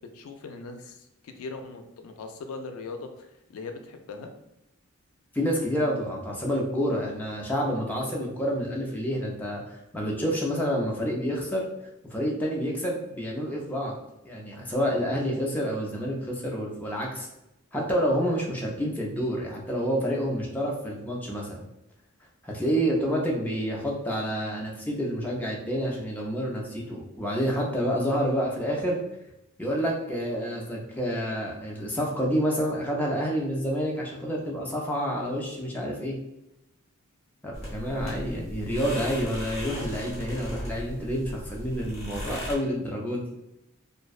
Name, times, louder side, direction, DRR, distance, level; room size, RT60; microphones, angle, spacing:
voice 1, 0.1-4.3 38.0-38.1, left 3 dB, 80° left, 5 dB, 0.3 m, -40 dB
voice 2, 5.3-11.6 12.1-13.9 14.2-17.3 17.7-21.6 22.4-29.0 29.6-36.2 37.4-43.2, equal, 10° left, -2 dB, 0.4 m, -28 dB
sound 1, 37.5-42.5, equal, 30° left, 0.9 m, -37 dB
2.5 x 2.1 x 2.3 m, 0.88 s
head